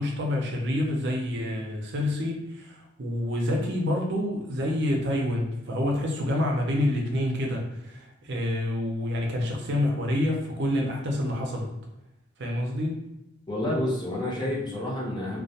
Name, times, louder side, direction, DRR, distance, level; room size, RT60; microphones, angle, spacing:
voice 1, 0.0-11.7 12.4-13.0, left 1 dB, 60° right, 1 dB, 0.5 m, -27 dB
voice 2, 13.5-15.4, left 1 dB, 25° left, -5 dB, 0.7 m, -29 dB
2.2 x 2.1 x 2.7 m, 0.94 s
head